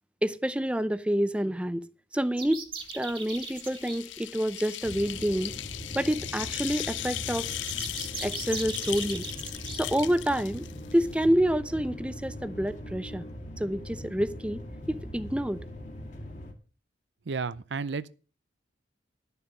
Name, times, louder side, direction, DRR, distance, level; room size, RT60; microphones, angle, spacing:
voice 1, 0.2-1.9 2.1-2.6 2.9-5.5 5.9-7.5 8.2-9.3 9.7-10.6 10.9-13.2 13.6-14.6 14.9-15.6, equal, 5° right, 0.5 m, -28 dB
sound 1, 2.4-4.0 7.3-9.8, right 5 dB, 30° right, 1.6 m, -39 dB
sound 2, 2.8-11.2, left 13 dB, 85° left, 0.6 m, -37 dB
sound 3, 4.8-16.5, equal, 40° left, 2.3 m, -41 dB
voice 2, 17.3-18.1, right 4 dB, 70° right, 0.6 m, -32 dB
11.5 x 7.0 x 6.6 m
head